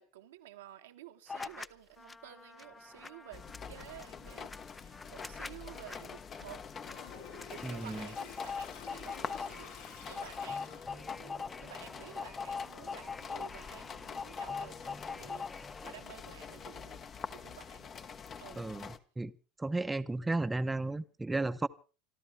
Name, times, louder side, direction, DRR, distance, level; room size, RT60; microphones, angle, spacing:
voice 1, 0.0-6.7 7.5-15.5 15.8-17.0 17.3-17.9 18.4-18.7 20.3-20.4, right 13 dB, 75° right, 1.3 m, -52 dB
sound 1, 1.3-1.7 2.0-16.0, left 5 dB, 15° left, 0.7 m, -43 dB
sound 2, 3.3-19.0, left 6 dB, 35° left, 1.3 m, -46 dB
Toilet flush, 6.8-11.2, left 6 dB, 70° left, 5.3 m, -51 dB
voice 2, 7.6-8.1 18.6-19.3 19.6-21.7, right 2 dB, 10° right, 1.0 m, -34 dB
27.0 x 13.0 x 3.4 m
figure-of-eight pair, 70°, 0 cm